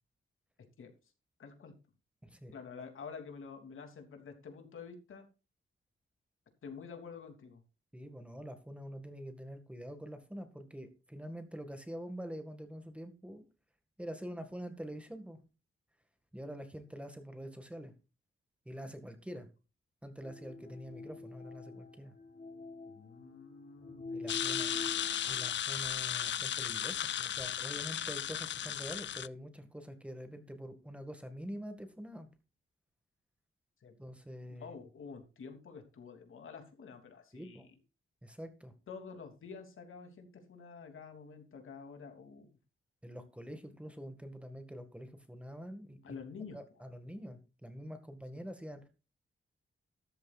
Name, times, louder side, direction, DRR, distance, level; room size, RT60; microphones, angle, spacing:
voice 1, 1.4-1.7 2.5-5.3 6.6-7.6 22.9-24.2 24.6-24.9 33.8-33.9 34.5-37.7 38.9-42.5 46.0-46.6, left 5 dB, 75° left, 5 dB, 3.1 m, -48 dB
voice 2, 2.2-2.5 7.9-13.4 14.0-15.4 16.3-17.9 18.7-19.5 20.0-22.1 24.1-24.7 25.3-32.3 34.0-34.8 37.3-37.7 38.2-38.7 43.0-46.2 46.5-48.9, equal, 5° right, 7 dB, 1.9 m, -45 dB
sound 1, 20.2-25.5, left 3 dB, 40° left, 3.3 m, -45 dB
sound 2, 24.3-29.3, left 10 dB, 60° left, 0.4 m, -35 dB
13.5 x 12.0 x 2.5 m, 0.31 s
wide cardioid pair, 130°, 21 cm